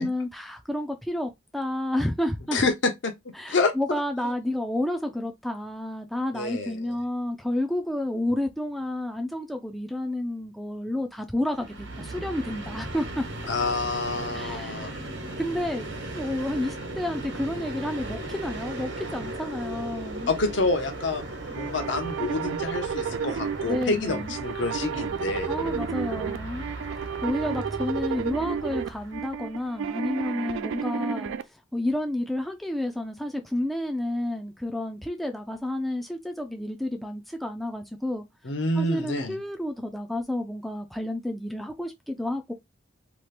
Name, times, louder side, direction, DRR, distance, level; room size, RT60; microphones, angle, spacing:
voice 1, 0.0-2.6 3.4-13.2 14.3-15.0 15.4-15.9 16.1-20.3 23.7-24.3 25.5-26.7 27.2-38.2 38.8-42.5, left 1 dB, ahead, 0.3 m, -30 dB
voice 2, 2.5-3.1 3.5-3.7 6.3-6.9 13.5-15.0 20.3-21.2 21.6-25.5 38.4-39.3, left 3 dB, 70° left, 0.7 m, -27 dB
Train, 11.5-29.6, right 2 dB, 65° right, 1.1 m, -37 dB
sound 1, 21.5-31.4, right 7 dB, 80° right, 0.3 m, -32 dB
2.9 x 2.4 x 3.2 m
head